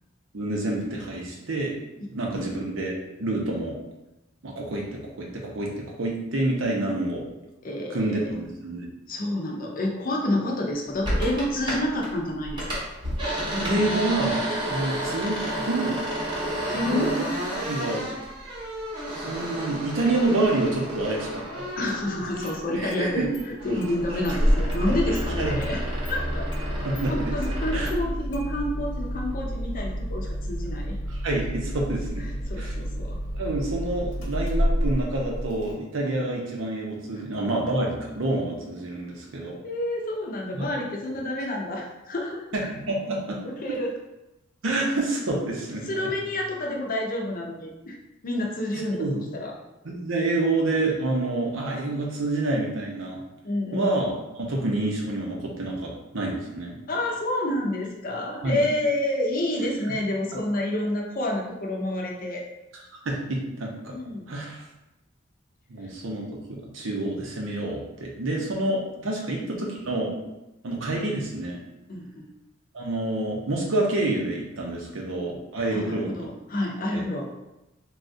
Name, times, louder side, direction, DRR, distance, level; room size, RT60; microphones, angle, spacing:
voice 1, 0.3-1.7 2.1-3.8 4.4-7.2 7.9-8.9 13.6-14.4 14.7-16.0 16.8-17.3 17.6-18.1 19.1-21.7 22.7-23.3 25.1-25.6 26.8-27.3 27.7-27.9 31.2-32.2 32.6-32.7 33.3-39.6 40.5-40.7 42.5-43.4 44.6-45.9 49.0-49.1 49.8-53.2 53.7-56.8 58.4-58.6 59.9-60.0 63.0-63.9 64.3-64.6 65.7-70.2 70.6-71.6 72.7-76.1 76.9-77.0, right 2 dB, 80° right, -1 dB, 0.7 m, -28 dB
voice 2, 7.6-8.0 9.1-12.9 16.6-17.1 21.8-25.8 26.1-26.5 27.1-31.0 32.5-33.2 39.6-42.4 43.4-43.9 45.8-48.0 48.2-49.5 53.4-53.9 56.9-62.4 63.9-64.3 69.2-69.6 71.9-72.3 75.7-77.2, left 1 dB, 45° left, 0 dB, 0.5 m, -29 dB
sound 1, 11.0-12.1 12.4-22.8 23.1-28.0, right 1 dB, 25° right, 0.8 m, -32 dB
Engine starting, 21.9-22.0 22.4-23.0 23.3-23.4 23.8-35.7, equal, 75° left, 0.9 m, -29 dB
3.4 x 2.3 x 2.6 m, 0.96 s
head